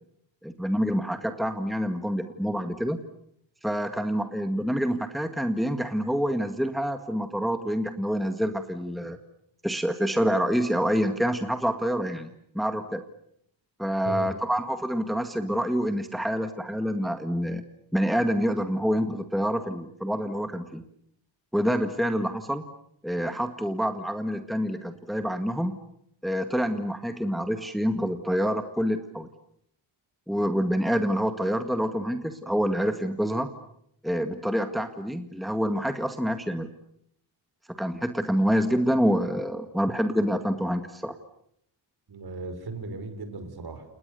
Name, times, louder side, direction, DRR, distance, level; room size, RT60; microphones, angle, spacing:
voice 1, 0.4-3.0 3.6-9.2 9.6-13.0 13.8-17.6 17.9-20.8 21.5-22.6 23.0-25.8 26.2-29.3 30.3-33.5 34.0-36.7 37.8-41.2, equal, ahead, 7 dB, 1.9 m, -27 dB
voice 2, 42.1-43.9, right 3 dB, 50° right, 9 dB, 5.6 m, -36 dB
29.5 x 29.5 x 6.9 m, 0.72 s
wide cardioid pair, 115°, 47 cm